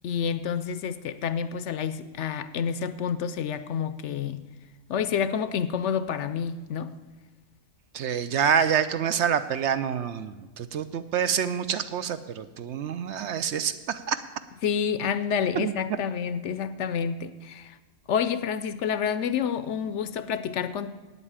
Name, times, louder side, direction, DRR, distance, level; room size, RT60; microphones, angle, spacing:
voice 1, 0.0-4.4 4.9-6.9 14.6-17.8 18.1-20.9, left 7 dB, 65° left, 13 dB, 0.8 m, -29 dB
voice 2, 7.9-14.2 15.5-15.7, right 8 dB, 65° right, 12 dB, 0.8 m, -27 dB
9.1 x 8.2 x 8.6 m, 1.3 s
omnidirectional pair, 1.4 m